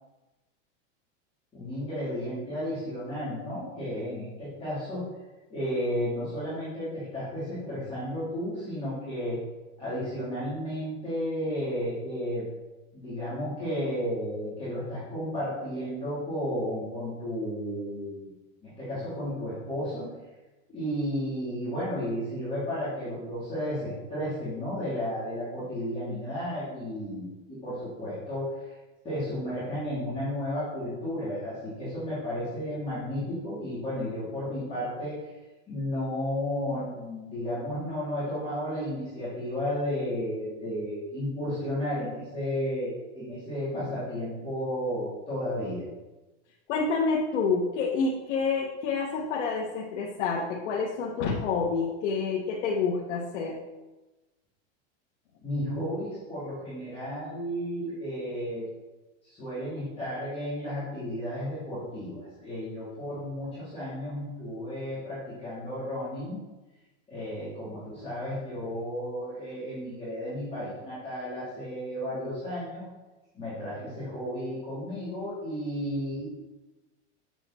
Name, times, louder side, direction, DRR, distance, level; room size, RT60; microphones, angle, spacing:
voice 1, 1.5-5.0 5.5-9.4 9.8-12.4 12.9-18.3 18.6-20.0 20.7-28.7 29.0-35.1 35.7-45.8 55.4-58.6 59.2-66.4 67.1-72.9 73.3-76.3, equal, 15° left, -12 dB, 3.3 m, -33 dB
voice 2, 46.7-53.6, left 4 dB, 80° left, -2 dB, 1.3 m, -28 dB
7.7 x 7.3 x 4.3 m, 1.1 s
supercardioid pair, 175°, 35 cm